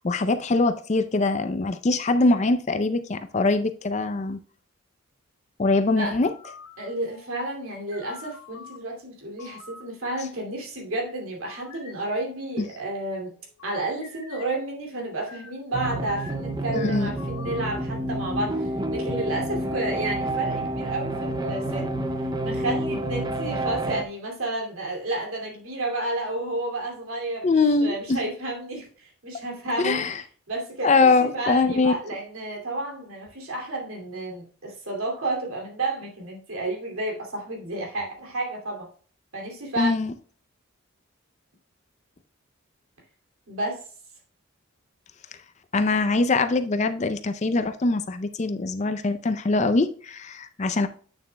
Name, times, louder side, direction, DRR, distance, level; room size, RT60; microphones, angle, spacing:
voice 1, 0.0-4.4 5.6-6.3 12.6-12.7 16.7-17.1 27.4-28.2 29.8-30.2 30.8-31.9 39.8-40.1 45.7-50.9, left 3 dB, 30° left, 0.4 m, -23 dB
sound 1, 6.1-8.8 9.4-9.8 10.2-10.9 11.5-12.8 13.2-18.4, left 5 dB, 75° left, 2.0 m, -47 dB
voice 2, 6.8-13.3 13.6-21.9 22.4-27.5 27.8-30.0 30.5-31.1 31.3-38.9 39.3-39.9 43.5-43.8, right 2 dB, 80° right, 2.6 m, -31 dB
sound 2, 15.7-24.0, right 1 dB, 20° right, 0.5 m, -29 dB
8.7 x 7.0 x 2.2 m
head